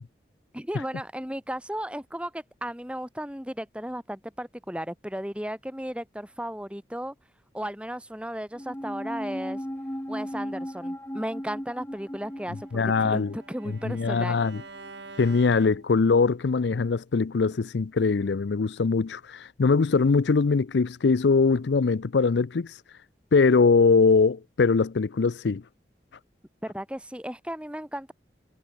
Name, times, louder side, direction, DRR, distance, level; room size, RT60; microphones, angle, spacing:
voice 1, 0.5-7.1 7.5-9.6 10.1-12.7 13.0-14.4 26.6-28.1, equal, 5° right, 2.7 m, -35 dB
sound 1, 8.6-15.1 15.4-15.5, equal, 15° left, 1.9 m, -37 dB
Bowed string instrument, 12.2-16.4, right 3 dB, 85° right, 4.1 m, -48 dB
voice 2, 12.7-13.3 13.7-14.6 15.2-22.7 23.3-25.6, left 4 dB, 80° left, 0.5 m, -22 dB
head